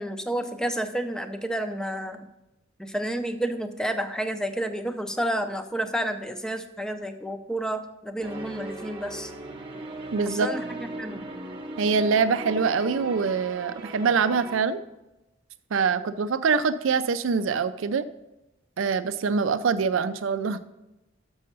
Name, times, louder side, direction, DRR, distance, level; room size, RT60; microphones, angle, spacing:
voice 1, 0.0-2.3 2.8-9.3 10.3-11.3, right 1 dB, 5° left, 8 dB, 0.5 m, -30 dB
sound 1, 8.2-14.6, right 1 dB, 25° right, 0.9 m, -38 dB
voice 2, 10.1-10.5 11.8-14.8 15.7-18.0 18.8-20.6, right 5 dB, 75° right, 14 dB, 0.4 m, -24 dB
6.7 x 6.2 x 5.3 m, 0.95 s
head